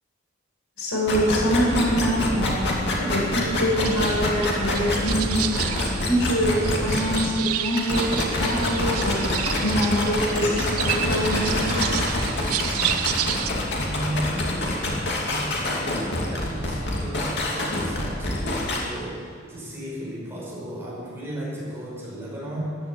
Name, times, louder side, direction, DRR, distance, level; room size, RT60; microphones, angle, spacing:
voice 1, 0.8-2.6 3.0-12.0, equal, 70° left, -2 dB, 4.8 m, -25 dB
sound 1, 1.1-7.2 7.8-18.8, left 1 dB, 50° left, 2.6 m, -26 dB
sound 2, 3.8-13.5, right 10 dB, 80° right, 0.8 m, -31 dB
voice 2, 13.8-22.8, equal, 10° right, -6 dB, 5.4 m, -34 dB
14.5 x 11.0 x 8.7 m, 2.1 s
head